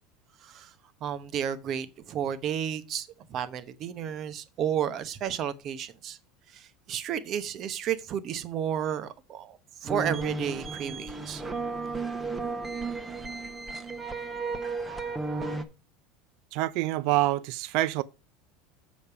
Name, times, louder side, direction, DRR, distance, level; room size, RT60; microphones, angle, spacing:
voice 1, 0.4-0.7 1.0-6.2 6.5-11.4, right 9 dB, 45° right, 0.9 m, -32 dB
sound 1, 9.9-15.6, right 3 dB, 15° right, 0.9 m, -33 dB
voice 2, 16.5-18.0, right 17 dB, 65° right, 0.4 m, -26 dB
6.7 x 5.2 x 5.7 m
supercardioid pair, 125°, 0 cm